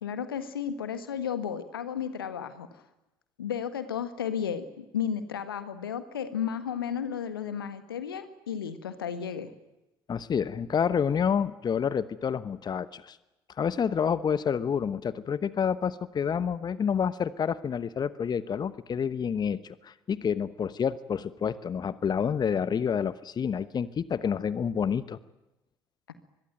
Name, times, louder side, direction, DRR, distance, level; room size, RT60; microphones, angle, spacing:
voice 1, 0.0-2.7 3.4-9.5, left 8 dB, 80° left, 11 dB, 1.6 m, -33 dB
voice 2, 10.1-13.2 13.6-25.2, left 7 dB, 35° left, 16 dB, 1.1 m, -28 dB
24.5 x 21.5 x 9.2 m, 0.98 s
figure-of-eight pair, 50°, 12 cm